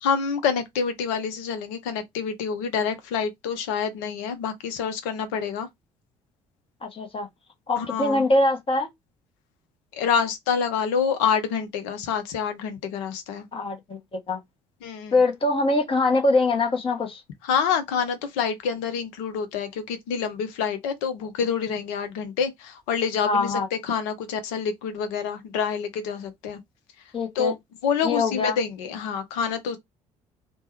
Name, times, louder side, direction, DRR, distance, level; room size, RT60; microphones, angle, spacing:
voice 1, 0.0-5.7 7.8-8.2 9.9-13.4 14.8-15.2 17.5-26.6 27.4-27.5 27.8-29.8, left 6 dB, 65° left, 0.7 m, -27 dB
voice 2, 6.8-7.3 7.7-8.9 13.5-14.4 15.1-17.2 23.2-23.7 27.1-27.5 28.0-28.6, left 2 dB, 30° left, 0.8 m, -23 dB
3.2 x 2.1 x 2.9 m
figure-of-eight pair, 50°, 18 cm